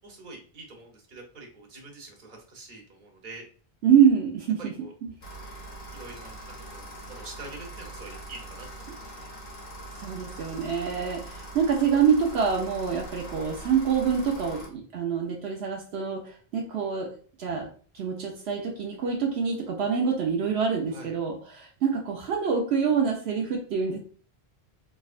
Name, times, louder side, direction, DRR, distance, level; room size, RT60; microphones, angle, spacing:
voice 1, 0.0-3.4 4.6-4.9 5.9-6.4 6.7-9.3 20.9-21.1, right 2 dB, 50° right, 0 dB, 1.1 m, -45 dB
voice 2, 3.8-4.7 5.0-5.1 10.0-17.1 17.4-17.7 17.9-24.0, right 7 dB, 80° right, 1 dB, 0.9 m, -25 dB
sound 1, 5.2-14.7, right 1 dB, 60° left, 1.3 m, -42 dB
3.6 x 3.1 x 2.4 m, 0.42 s
omnidirectional pair, 1.1 m